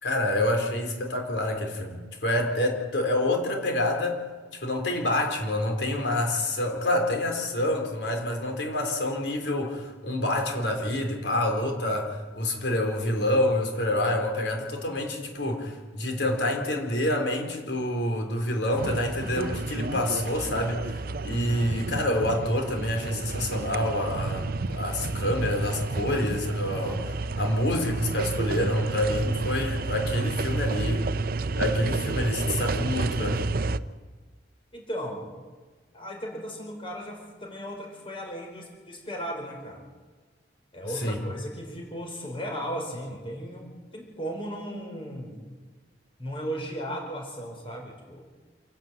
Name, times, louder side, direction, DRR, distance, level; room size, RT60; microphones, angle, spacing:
voice 1, 0.0-4.2 4.5-31.1 31.6-33.5 41.0-41.2, left 1 dB, 80° left, 3 dB, 3.9 m, -27 dB
sound 1, 18.8-33.8, right 3 dB, 55° right, 0.6 m, -30 dB
voice 2, 34.7-35.3 35.9-39.8 40.7-45.4 46.2-48.3, equal, 30° left, 1 dB, 5.0 m, -36 dB
27.5 x 12.0 x 8.9 m, 1.4 s
head